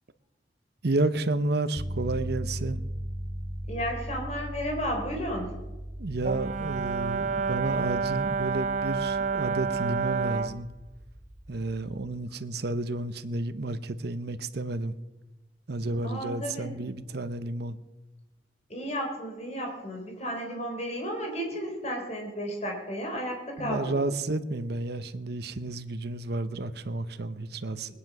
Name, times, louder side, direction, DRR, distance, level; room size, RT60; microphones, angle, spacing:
voice 1, 0.8-2.8 6.0-10.7 11.5-14.9 15.7-17.8 23.6-27.9, right 2 dB, 60° right, 0.8 m, -31 dB
sound 1, 1.8-11.9, equal, 5° right, 3.3 m, -39 dB
voice 2, 3.7-5.6 16.0-16.7 18.7-24.0, equal, 35° left, 3.7 m, -33 dB
Brass instrument, 6.2-10.6, right 5 dB, 40° right, 0.4 m, -29 dB
19.5 x 9.8 x 6.0 m
head